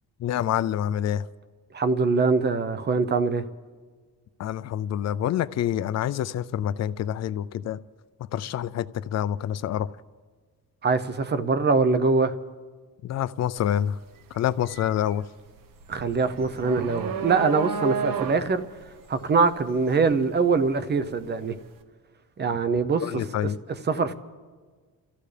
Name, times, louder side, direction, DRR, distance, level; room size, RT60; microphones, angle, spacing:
voice 1, 0.2-1.3 4.4-7.8 8.3-9.9 13.0-14.0 14.3-15.3 23.0-23.6, left 10 dB, 50° left, 0.4 m, -27 dB
voice 2, 1.7-3.4 10.8-12.3 15.9-18.6 19.1-21.6 22.4-23.2 23.9-24.1, right 4 dB, 30° right, 0.7 m, -23 dB
sound 1, 13.6-13.8 14.2-21.2, right 6 dB, 65° right, 1.1 m, -33 dB
28.5 x 14.5 x 3.3 m
cardioid pair, 130°, 35 cm